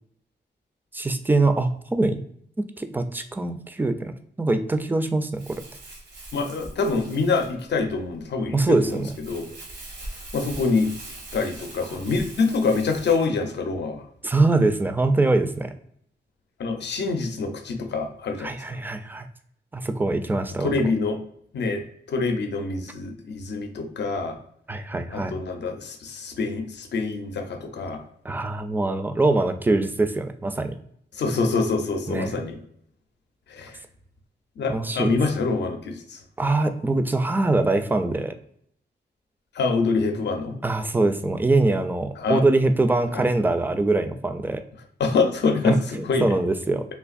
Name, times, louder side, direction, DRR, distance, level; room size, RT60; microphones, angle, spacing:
voice 1, 0.9-2.2 2.6-4.1 4.4-5.4 8.5-9.1 14.2-15.7 18.4-19.3 19.7-20.7 24.7-25.3 28.2-30.7 32.1-32.3 34.7-35.2 36.4-38.3 40.6-44.6 45.7-46.9, right 2 dB, 10° right, 9 dB, 0.3 m, -23 dB
Crumpling crinkling, 5.3-13.3, right 2 dB, 75° right, 1.0 m, -42 dB
voice 2, 6.3-9.5 10.3-10.9 11.3-14.0 16.6-18.6 20.6-21.2 21.5-21.8 22.1-24.4 25.1-28.0 31.2-32.6 33.5-33.8 34.6-36.2 39.5-40.6 42.2-42.4 43.1-43.3 45.0-46.4, left 4 dB, 75° left, 5 dB, 0.5 m, -25 dB
3.4 x 2.5 x 2.4 m, 0.68 s
wide cardioid pair, 90°, 18 cm